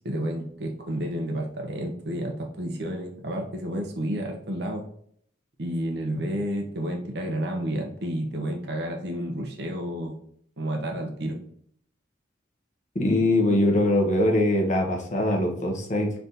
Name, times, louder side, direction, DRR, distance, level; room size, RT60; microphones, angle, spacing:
voice 1, 0.0-4.8 5.6-10.2 10.6-11.4, right 1 dB, 60° right, 2 dB, 0.8 m, -30 dB
voice 2, 12.9-16.1, left 1 dB, 40° left, 0 dB, 1.0 m, -22 dB
4.0 x 3.4 x 2.7 m, 0.64 s
head